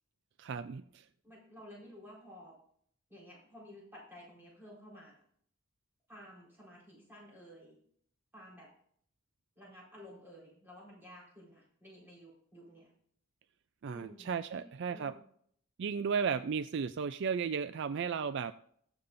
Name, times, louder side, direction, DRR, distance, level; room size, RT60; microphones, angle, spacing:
voice 1, 0.4-1.0 13.8-15.1 15.8-18.5, right 6 dB, 55° right, 13 dB, 0.3 m, -34 dB
voice 2, 1.2-2.5 3.1-5.2 6.1-7.8 8.3-8.7 9.6-12.9 13.9-15.2, equal, 10° right, -4 dB, 4.3 m, -53 dB
21.0 x 7.1 x 2.6 m, 0.64 s
head